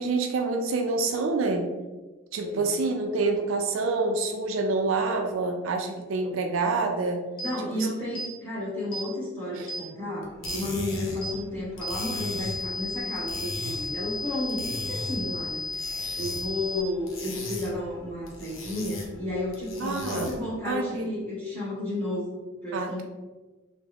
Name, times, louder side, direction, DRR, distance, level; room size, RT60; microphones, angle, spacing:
voice 1, 0.0-1.7 2.3-7.2 7.8-7.9 9.5-9.7 19.8-20.3 20.6-21.1 22.7-23.0, right 3 dB, 75° right, 4 dB, 0.4 m, -27 dB
sound 1, 7.4-7.5 8.2-8.3 8.9-9.1 9.7-9.8 10.4-10.6 11.2-11.4 11.8-16.8, left 2 dB, 45° left, 0.8 m, -34 dB
voice 2, 7.4-15.6 16.2-23.0, left 1 dB, 10° left, -8 dB, 1.5 m, -32 dB
sound 2, 10.2-20.6, left 1 dB, 85° left, 0.8 m, -39 dB
3.4 x 2.1 x 3.3 m, 1.2 s
head